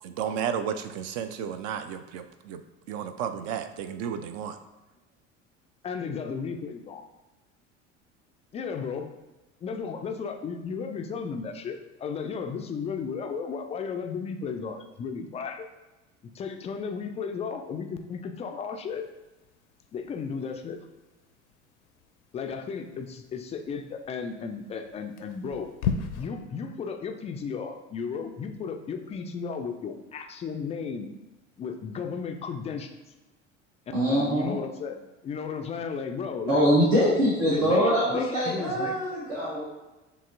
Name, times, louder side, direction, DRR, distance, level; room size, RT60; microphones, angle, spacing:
voice 1, 0.0-2.6 2.9-4.6, right 8 dB, 50° right, 9 dB, 0.4 m, -33 dB
voice 2, 5.8-7.0 8.5-9.1 9.6-15.7 16.3-19.0 19.9-20.8 22.3-25.7 26.1-31.1 31.6-32.9 33.9-35.0 35.2-36.6 37.2-39.0, left 5 dB, 20° left, 5 dB, 0.3 m, -34 dB
sound 1, 18.9-26.3, left 7 dB, 65° left, 0.6 m, -38 dB
voice 3, 33.9-34.5 36.5-39.6, equal, 75° right, -7 dB, 1.3 m, -23 dB
6.7 x 2.9 x 2.5 m, 1.1 s
figure-of-eight pair, 65°, 38 cm